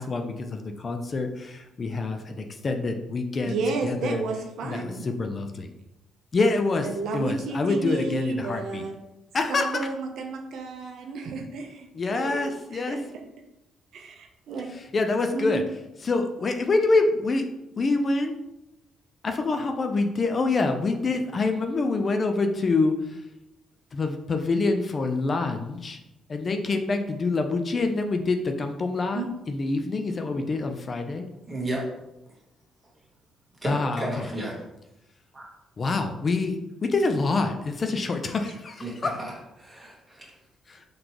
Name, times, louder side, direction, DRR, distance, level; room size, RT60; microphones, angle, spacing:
voice 1, 0.0-4.2 4.6-5.7 6.3-8.8 9.3-9.9 11.9-13.0 14.7-15.6 16.0-17.5 17.8-18.3 19.2-23.2 23.9-26.0 26.3-31.3 33.6-34.3 35.8-39.1 40.7-40.8, left 3 dB, 40° left, 6 dB, 0.4 m, -26 dB
voice 2, 3.4-5.0 6.8-9.0 9.5-13.0 13.9-14.7 15.3-15.7 29.1-29.3, right 3 dB, 75° right, 2 dB, 0.6 m, -32 dB
voice 3, 31.5-31.8 33.6-34.6 35.3-35.5 38.8-39.3 39.6-40.3, right 1 dB, 20° right, -3 dB, 1.4 m, -33 dB
4.1 x 3.2 x 2.9 m, 0.91 s
cardioid pair, 90°, 0 cm